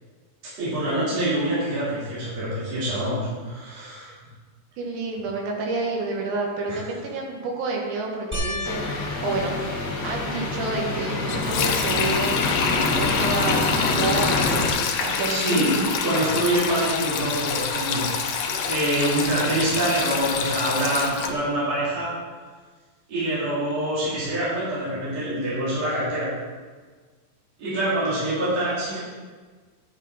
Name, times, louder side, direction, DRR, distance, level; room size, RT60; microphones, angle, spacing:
voice 1, 0.6-4.1 6.7-6.8 15.3-18.1 18.5-22.1 23.1-26.3 27.6-29.0, right 1 dB, 50° right, -10 dB, 4.3 m, -25 dB
voice 2, 4.8-8.9 9.2-9.6 10.0-12.4 12.8-16.4, right 3 dB, 85° right, 0 dB, 3.4 m, -29 dB
sound 1, 8.3-10.9 11.5-12.1 12.4-12.5 15.7-15.8, left 1 dB, 10° right, 0.5 m, -35 dB
sound 2, 8.6-14.7, left 2 dB, 50° left, 1.2 m, -26 dB
Sink (filling or washing), 11.3-21.3, left 6 dB, 80° left, 1.5 m, -27 dB
11.5 x 8.3 x 4.2 m, 1.5 s
omnidirectional pair, 4.0 m